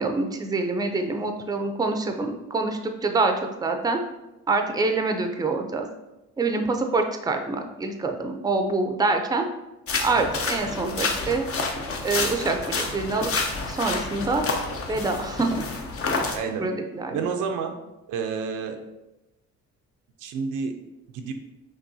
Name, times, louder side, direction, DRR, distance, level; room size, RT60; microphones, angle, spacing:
voice 1, 0.0-3.3 3.6-4.0 4.5-5.9 6.4-9.5 10.0-11.5 12.0-13.3 13.7-14.4 14.9-15.6 16.6-17.3, right 3 dB, 15° right, 5 dB, 0.5 m, -25 dB
sound 1, 9.9-16.4, left 3 dB, 50° left, 0.7 m, -29 dB
voice 2, 16.3-16.7 17.1-17.7 18.1-18.8 20.2-20.7 21.1-21.3, right 5 dB, 90° right, 5 dB, 0.6 m, -29 dB
5.6 x 3.0 x 2.7 m, 0.97 s
cardioid pair, 90°, 30 cm